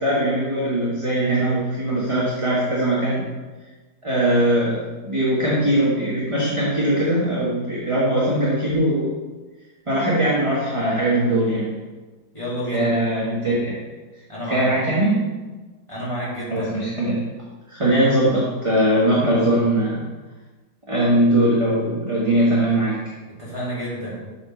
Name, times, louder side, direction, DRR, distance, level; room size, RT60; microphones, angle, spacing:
voice 1, 0.0-3.2 4.0-9.1 9.9-11.8 12.7-13.7 14.5-15.3 16.5-17.2 17.7-20.0 20.9-23.0, right 1 dB, 20° right, -6 dB, 1.4 m, -20 dB
voice 2, 12.3-12.9 14.3-14.7 15.9-16.7 23.3-24.2, equal, 15° left, -8 dB, 2.8 m, -29 dB
7.7 x 4.9 x 6.0 m, 1.3 s
omnidirectional pair, 1.8 m